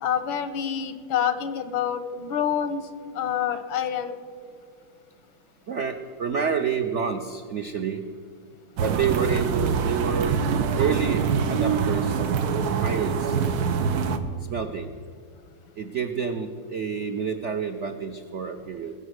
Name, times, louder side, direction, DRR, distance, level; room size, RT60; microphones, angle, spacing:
voice 1, 0.0-2.9 3.2-4.1, left 8 dB, 90° left, 11 dB, 1.8 m, -27 dB
voice 2, 5.7-8.0 8.8-10.4 10.8-12.4 12.8-13.4 14.5-14.9 15.8-18.9, right 6 dB, 90° right, 6 dB, 0.6 m, -28 dB
sound 1, 8.8-14.2, right 6 dB, 60° right, 1.2 m, -24 dB
20.0 x 7.8 x 6.5 m, 2.3 s
omnidirectional pair, 2.2 m